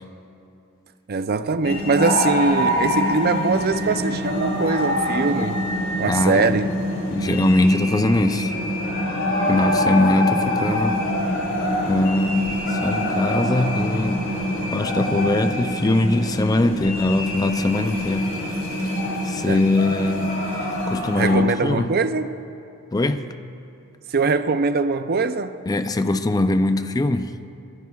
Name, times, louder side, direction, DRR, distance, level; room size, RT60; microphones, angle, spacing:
voice 1, 1.1-5.6 6.0-6.7 19.5-19.6 21.1-22.3 24.1-25.6, right 4 dB, 45° right, 0.5 m, -22 dB
sound 1, 1.6-21.4, left 1 dB, 60° left, 3.1 m, -25 dB
voice 2, 6.1-6.7 7.1-8.5 9.5-11.0 11.9-14.3 14.7-19.0 19.2-20.6 20.9-21.9 22.9-23.3 25.7-27.3, left 2 dB, 15° left, 0.4 m, -22 dB
29.5 x 14.0 x 2.4 m
head